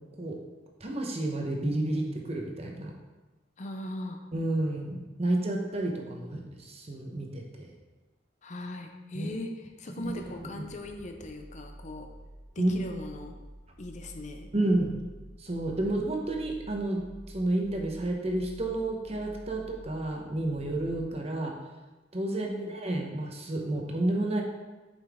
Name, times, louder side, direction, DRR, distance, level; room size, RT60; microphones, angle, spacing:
voice 1, 0.8-2.9 4.3-7.7 9.1-9.3 10.0-10.1 10.4-10.5 12.6-12.7 14.5-14.9 15.4-21.5 22.1-24.4, right 1 dB, 35° right, 1 dB, 0.9 m, -30 dB
voice 2, 3.6-4.2 8.4-12.1 12.6-13.3 13.8-14.5 22.3-22.7, left 1 dB, 40° left, 4 dB, 0.6 m, -39 dB
sound 1, 10.0-21.5, right 1 dB, 15° left, 1.2 m, -49 dB
7.3 x 5.4 x 3.5 m, 1.2 s
head